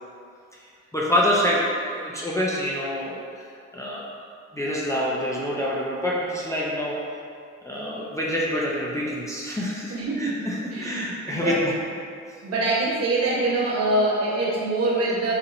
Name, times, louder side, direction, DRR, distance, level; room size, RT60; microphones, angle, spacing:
voice 1, 0.9-3.2 3.7-4.0 4.5-7.0 7.7-11.7, equal, 10° left, -6 dB, 0.5 m, -26 dB
voice 2, 9.9-10.4 10.7-11.6 12.4-15.3, right 2 dB, 55° right, -5 dB, 0.9 m, -24 dB
4.1 x 2.8 x 2.5 m, 2.3 s
cardioid pair, 90°, 30 cm